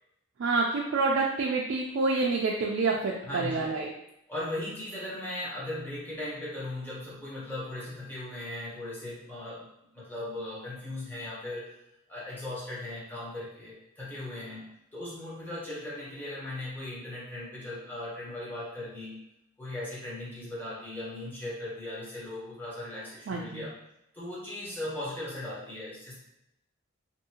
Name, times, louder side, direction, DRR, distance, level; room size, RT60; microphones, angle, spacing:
voice 1, 0.4-3.9 23.3-23.7, right 3 dB, 65° right, -1 dB, 0.3 m, -27 dB
voice 2, 3.2-3.7 4.3-11.7 12.1-19.2 19.6-23.7 24.1-26.1, left 1 dB, 10° left, -8 dB, 0.9 m, -38 dB
2.7 x 2.6 x 2.7 m, 0.84 s
head